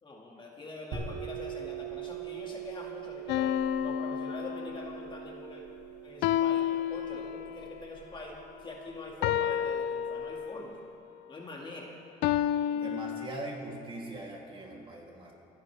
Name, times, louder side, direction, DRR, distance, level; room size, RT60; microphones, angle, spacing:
voice 1, 0.0-5.6 6.0-10.7 11.3-12.0, left 2 dB, 30° left, -1 dB, 2.1 m, -44 dB
sound 1, 0.9-10.3, right 9 dB, 85° right, 2.4 m, -43 dB
sound 2, 3.3-5.1 6.2-7.7 9.2-10.8 12.2-13.3, left 10 dB, 90° left, 0.4 m, -30 dB
voice 2, 12.7-15.3, right 2 dB, 30° right, -2 dB, 2.9 m, -41 dB
28.0 x 10.5 x 3.4 m, 2.8 s
cardioid pair, 110°, 17 cm